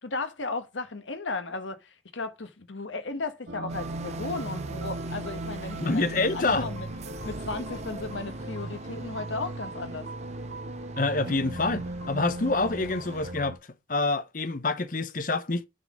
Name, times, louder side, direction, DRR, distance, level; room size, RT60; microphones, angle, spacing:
voice 1, 0.0-6.9 7.2-10.1, left 3 dB, 85° left, 1.2 m, -35 dB
sound 1, 3.5-13.6, right 2 dB, 65° right, 1.3 m, -37 dB
sound 2, 3.7-13.3, right 3 dB, 35° right, 0.7 m, -43 dB
voice 2, 5.8-6.7 11.0-13.6 13.9-15.7, left 3 dB, 45° left, 0.8 m, -27 dB
7.4 x 4.0 x 6.2 m
head